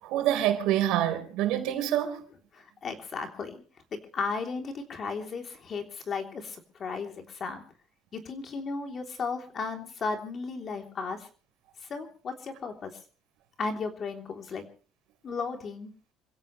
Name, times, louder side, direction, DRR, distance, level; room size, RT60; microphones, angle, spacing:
voice 1, 0.0-2.2, right 12 dB, 80° right, 4.0 m, -26 dB
voice 2, 2.5-3.6 3.9-7.6 8.1-11.2 11.9-13.0 13.6-14.6 15.2-15.9, left 4 dB, 35° left, 3.3 m, -35 dB
27.5 x 16.0 x 3.2 m
cardioid pair, 150°, 0 cm